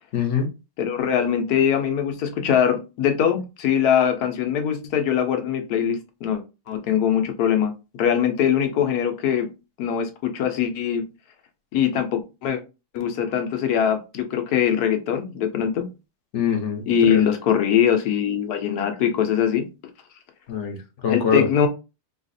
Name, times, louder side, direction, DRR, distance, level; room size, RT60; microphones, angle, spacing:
voice 1, 0.1-0.5 16.3-17.2 20.5-21.5, left 7 dB, 55° left, 0.9 m, -24 dB
voice 2, 0.8-6.4 6.7-7.7 8.0-9.5 9.8-11.0 11.7-12.6 12.9-15.9 16.9-19.7 21.1-21.7, left 8 dB, 75° left, 1.2 m, -22 dB
4.0 x 2.4 x 2.6 m
omnidirectional pair, 1.7 m